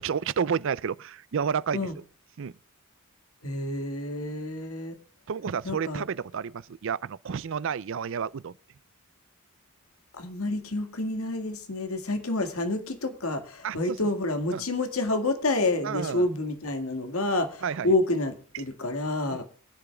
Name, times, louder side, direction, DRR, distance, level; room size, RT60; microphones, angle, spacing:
voice 1, 0.0-1.9 2.4-2.5 5.3-8.5 13.6-14.0 14.5-14.6 15.8-16.3 17.6-17.9 19.3-19.4, right 6 dB, 60° right, 0.4 m, -30 dB
voice 2, 3.4-5.0 5.7-6.0 10.2-19.4, left 2 dB, 75° left, 2.0 m, -28 dB
23.0 x 10.0 x 2.3 m
head